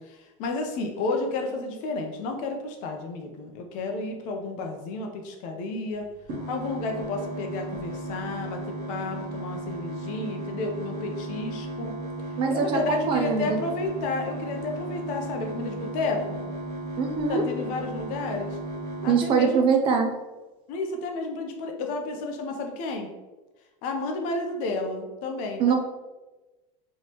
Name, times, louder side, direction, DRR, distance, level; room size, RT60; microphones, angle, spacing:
voice 1, 0.0-6.1 6.5-11.9 12.5-16.4 17.3-18.6 19.0-19.6 20.7-23.1 23.8-25.8, left 3 dB, 50° left, 3 dB, 0.6 m, -31 dB
sound 1, 6.2-19.2, right 1 dB, 45° right, 1.2 m, -35 dB
voice 2, 12.4-13.6 17.0-17.4 19.0-20.1 25.6-25.8, right 6 dB, 30° right, 4 dB, 0.3 m, -23 dB
3.5 x 3.1 x 2.9 m, 1.1 s
supercardioid pair, 160°, 17 cm